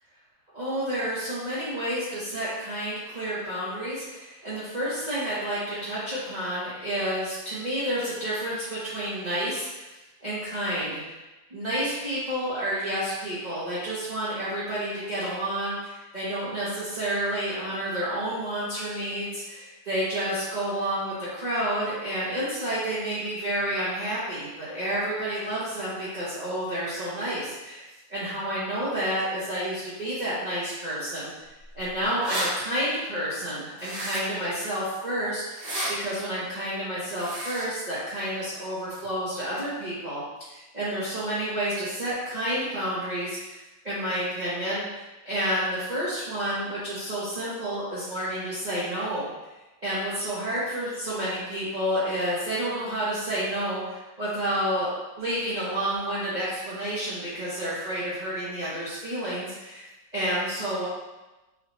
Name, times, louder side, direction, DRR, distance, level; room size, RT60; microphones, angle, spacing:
voice 1, 0.5-9.9 10.2-11.0 11.5-31.3 31.7-40.2 40.5-49.3 49.8-59.9 60.1-60.9, right 1 dB, 30° right, -11 dB, 0.9 m, -30 dB
sound 1, 31.7-31.8 32.0-32.5 33.8-34.4 35.5-35.9 37.1-37.7, right 1 dB, 65° right, 1.9 m, -31 dB
5.6 x 2.4 x 3.1 m, 1.1 s
omnidirectional pair, 2.1 m